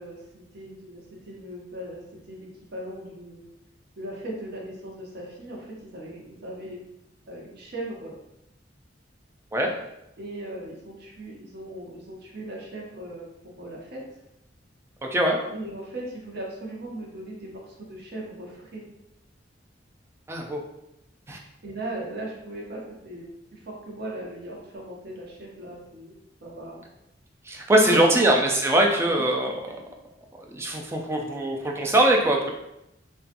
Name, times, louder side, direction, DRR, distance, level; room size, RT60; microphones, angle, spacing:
voice 1, 0.0-3.5 4.0-6.8 7.3-8.1 10.2-14.0 15.5-18.8 21.6-26.9 27.7-28.2 29.1-29.2, right 1 dB, 60° right, -2 dB, 0.7 m, -38 dB
voice 2, 20.3-20.6 21.3-21.4 27.5-29.5 30.4-32.5, right 1 dB, 15° right, 1 dB, 0.3 m, -22 dB
2.7 x 2.2 x 2.5 m, 0.85 s
head